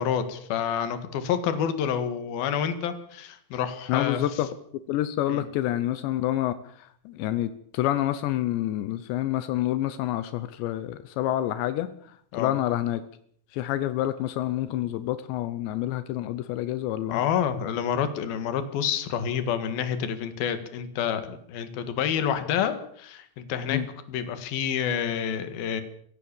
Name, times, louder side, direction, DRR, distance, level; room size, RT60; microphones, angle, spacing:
voice 1, 0.0-4.2 5.3-5.5 12.3-12.5 17.1-23.8 24.1-25.8, left 8 dB, 65° left, 10 dB, 3.5 m, -28 dB
voice 2, 3.9-4.5 4.9-13.0 13.5-17.2 23.7-23.9, left 13 dB, 85° left, 13 dB, 3.2 m, -28 dB
24.5 x 16.5 x 7.1 m, 0.63 s
omnidirectional pair, 5.0 m